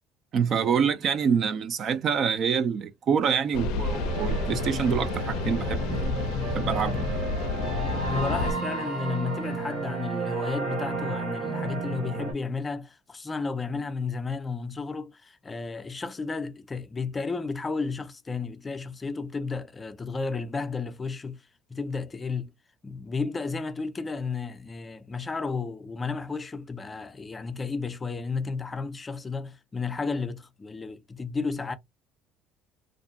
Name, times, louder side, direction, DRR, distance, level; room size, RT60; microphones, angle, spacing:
voice 1, 0.3-6.1 6.5-7.2, right 7 dB, 50° right, 0.4 m, -26 dB
sound 1, 3.5-8.5, left 3 dB, 80° left, 0.4 m, -30 dB
sound 2, 3.9-12.3, right 3 dB, 75° right, 1.5 m, -33 dB
voice 2, 7.7-21.4 21.7-22.5 22.8-31.7, left 4 dB, 25° left, 0.5 m, -33 dB
2.5 x 2.1 x 2.7 m
supercardioid pair, 95°, 0 cm